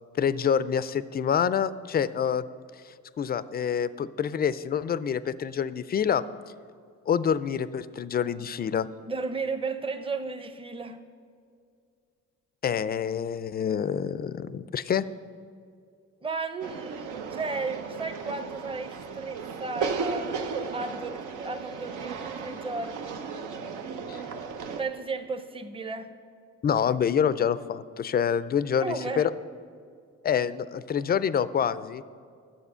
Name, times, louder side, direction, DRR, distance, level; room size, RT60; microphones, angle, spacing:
voice 1, 0.2-2.4 3.2-6.2 7.1-8.9 12.6-15.1 24.1-24.2 26.6-29.3 30.2-32.0, left 8 dB, 30° left, 16 dB, 0.4 m, -27 dB
voice 2, 9.1-11.0 16.2-20.3 20.7-23.2 24.8-26.1 28.8-29.3, right 3 dB, 20° right, 9 dB, 0.7 m, -34 dB
sound 1, 16.6-24.8, right 5 dB, 85° right, 0.8 m, -35 dB
11.0 x 7.5 x 5.6 m, 2.3 s
cardioid pair, 90°, 30 cm